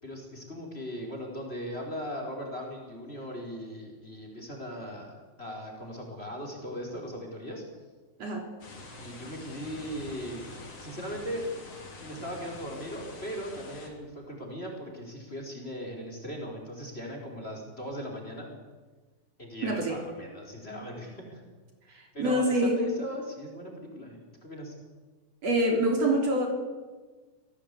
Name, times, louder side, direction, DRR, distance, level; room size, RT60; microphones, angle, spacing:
voice 1, 0.0-7.6 9.0-10.4 10.8-11.5 12.0-18.5 19.4-21.4 21.9-24.7, equal, 20° left, 1 dB, 4.9 m, -38 dB
sound 1, 8.6-13.9, left 2 dB, 50° left, 4.9 m, -46 dB
voice 2, 19.6-20.0 22.2-22.9 25.4-26.5, right 1 dB, 55° right, 3 dB, 4.3 m, -25 dB
25.0 x 17.5 x 8.5 m, 1.3 s
omnidirectional pair, 3.5 m